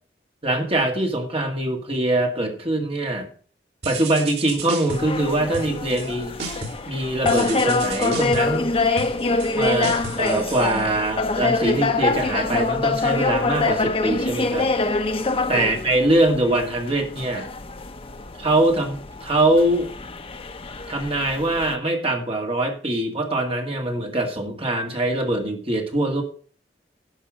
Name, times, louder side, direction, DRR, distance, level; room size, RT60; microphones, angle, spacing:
voice 1, 0.4-3.3 3.8-6.4 6.9-8.7 9.5-14.7 15.5-17.5 18.4-19.9 20.9-26.2, right 1 dB, 35° right, 2 dB, 2.1 m, -23 dB
sound 1, 3.8-5.2 5.5-6.1 6.4-6.9 7.2-11.3, right 3 dB, 65° right, 3.2 m, -34 dB
sound 2, 4.9-21.7, left 3 dB, 30° left, 0.7 m, -25 dB
11.5 x 5.4 x 6.4 m, 0.44 s
head